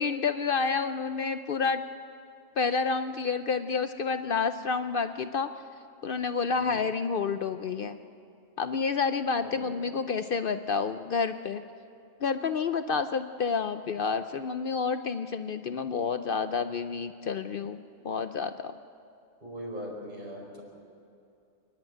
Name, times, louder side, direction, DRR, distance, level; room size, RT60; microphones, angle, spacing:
voice 1, 0.0-1.8 2.6-5.5 6.0-8.0 8.6-11.6 12.2-18.7, left 5 dB, 60° left, 10 dB, 0.5 m, -29 dB
voice 2, 9.4-9.9 19.4-20.6, equal, 30° right, -2 dB, 4.9 m, -40 dB
28.0 x 10.5 x 9.0 m, 2.6 s
omnidirectional pair, 1.5 m